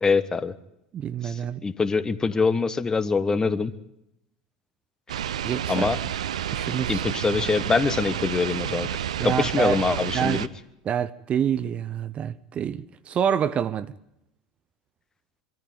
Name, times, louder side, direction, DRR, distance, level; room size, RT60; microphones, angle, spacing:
voice 1, 0.0-0.5 1.2-3.7 5.7-6.0 6.9-8.9 9.2-10.5, left 4 dB, 20° left, 1.2 m, -24 dB
voice 2, 0.9-1.6 5.4-5.9 6.5-7.0 9.2-9.8 10.1-10.4 10.8-13.9, right 8 dB, 35° right, 0.8 m, -27 dB
sound 1, 5.1-10.5, right 10 dB, 70° right, 0.7 m, -30 dB
24.0 x 14.0 x 9.5 m
figure-of-eight pair, 75°, 4 cm